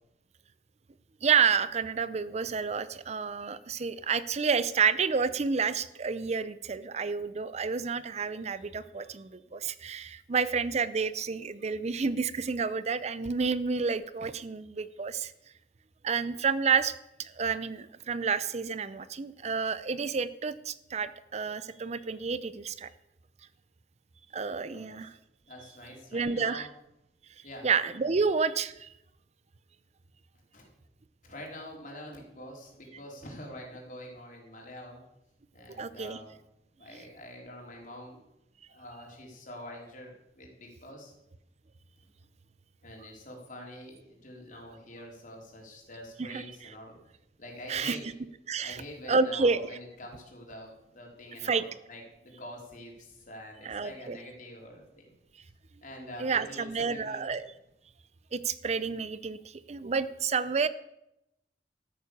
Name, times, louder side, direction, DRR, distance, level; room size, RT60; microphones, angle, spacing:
voice 1, 1.2-15.3 16.0-16.9 17.2-22.9 24.3-25.1 26.1-26.7 27.6-28.9 35.8-36.2 46.2-46.4 47.7-48.0 48.5-48.8 49.1-49.7 51.4-51.6 53.6-54.2 56.2-57.5 58.3-60.7, right 5 dB, 40° right, 15 dB, 0.5 m, -29 dB
voice 2, 24.7-25.1 25.4-26.6 27.4-27.7 28.0-28.2 30.5-30.7 31.2-35.0 35.5-36.4 36.8-38.2 38.7-41.1 42.8-47.0 47.4-48.0 48.6-55.1 55.8-57.3, left 1 dB, 50° left, 0 dB, 4.0 m, -46 dB
13.0 x 9.4 x 6.9 m, 0.86 s
head